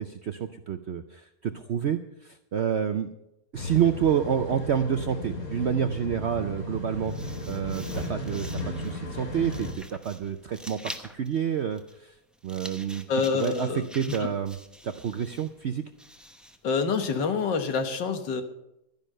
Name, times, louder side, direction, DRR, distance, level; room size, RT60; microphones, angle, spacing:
voice 1, 0.0-3.1 3.5-7.1 7.5-8.5 8.8-12.1 12.4-13.1 13.3-14.6 14.8-15.8, right 8 dB, 70° right, 9 dB, 0.6 m, -28 dB
sound 1, 3.5-9.7, left 1 dB, 55° left, 2.7 m, -35 dB
sound 2, 6.8-16.7, equal, ahead, 0.5 m, -46 dB
voice 2, 13.1-14.3 16.6-18.4, left 5 dB, 90° left, 7 dB, 1.9 m, -27 dB
12.5 x 10.5 x 6.5 m, 0.85 s
omnidirectional pair, 1.9 m